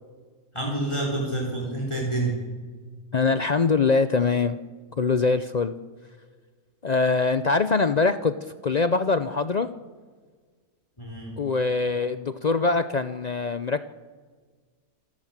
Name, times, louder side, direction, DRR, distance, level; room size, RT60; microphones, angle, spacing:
voice 1, 0.5-2.4 11.0-11.3, right 2 dB, 20° left, -1 dB, 4.5 m, -28 dB
voice 2, 3.1-4.6 5.0-5.7 6.8-8.3 8.6-9.7 11.4-13.9, left 4 dB, 60° left, 11 dB, 0.4 m, -23 dB
27.5 x 13.0 x 7.4 m, 1.5 s
omnidirectional pair, 1.6 m